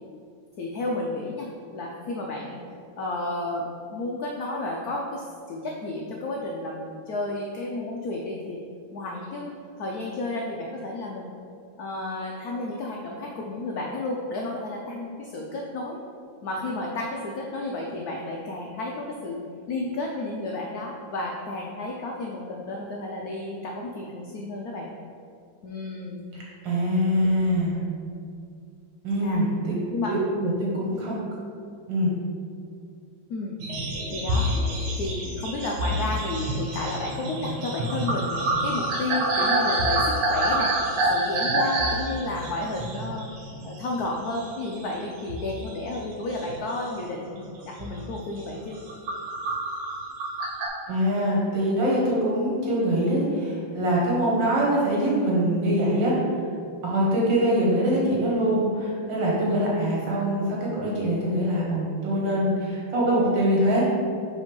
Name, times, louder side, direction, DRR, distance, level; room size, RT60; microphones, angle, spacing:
voice 1, 0.6-2.6 3.0-8.6 8.9-9.5 9.8-11.3 11.8-16.0 16.4-24.9 25.6-26.2 29.2-29.4 29.9-30.1 33.3-33.6 34.1-34.5 35.0-40.7 41.0-43.3 43.6-48.8, left 2 dB, 80° left, -1 dB, 0.8 m, -32 dB
voice 2, 26.3-27.8 29.0-29.8 30.1-31.2 31.9-32.1 50.9-56.1 56.8-63.9, equal, 65° right, -5 dB, 2.0 m, -24 dB
sound 1, 33.6-44.1 44.3-45.0 45.3-46.8 47.3-47.5 47.8-48.1 48.6-50.7, right 1 dB, 90° right, 1.7 m, -27 dB
5.2 x 3.6 x 5.2 m, 2.4 s
omnidirectional pair, 2.2 m